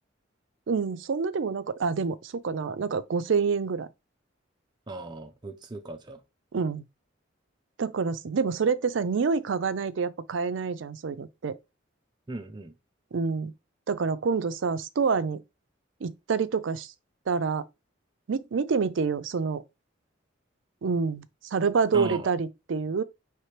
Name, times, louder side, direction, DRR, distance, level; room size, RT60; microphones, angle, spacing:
voice 1, 0.7-3.9 6.5-6.8 7.8-11.6 13.1-13.5 13.9-15.4 16.0-16.9 17.3-17.6 18.3-19.6 20.8-21.2 21.5-23.0, right 5 dB, 75° right, 0.5 m, -27 dB
voice 2, 4.9-6.2 12.3-12.7 21.9-22.3, right 2 dB, 25° right, 0.5 m, -37 dB
4.4 x 3.3 x 3.2 m
head